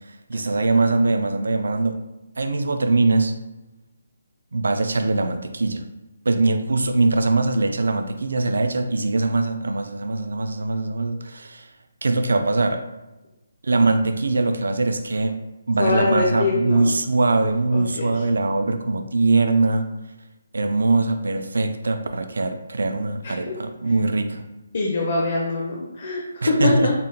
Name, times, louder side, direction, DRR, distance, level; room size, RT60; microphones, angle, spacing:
voice 1, 0.1-2.0 2.4-3.3 4.5-5.9 6.3-11.7 12.0-12.8 13.6-15.4 15.7-19.9 20.5-24.5 26.4-26.9, right 3 dB, 80° right, 7 dB, 0.3 m, -22 dB
voice 2, 15.8-16.9 17.7-18.1 23.2-23.3 24.7-26.9, left 3 dB, 40° left, -1 dB, 0.5 m, -23 dB
4.0 x 2.1 x 3.8 m, 1.0 s
hypercardioid pair, 180°, 0 cm